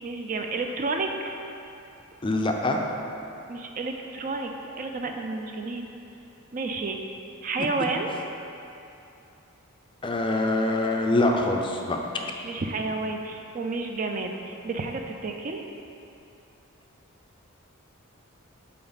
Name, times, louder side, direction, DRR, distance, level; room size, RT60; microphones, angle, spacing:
voice 1, 0.0-1.3 3.5-5.9 6.5-7.0 7.4-8.1 12.4-15.6, right 3 dB, 40° right, 4 dB, 0.4 m, -31 dB
voice 2, 2.2-2.8 10.0-12.0, left 2 dB, 25° left, 2 dB, 0.4 m, -24 dB
7.5 x 4.4 x 3.9 m, 2.7 s
head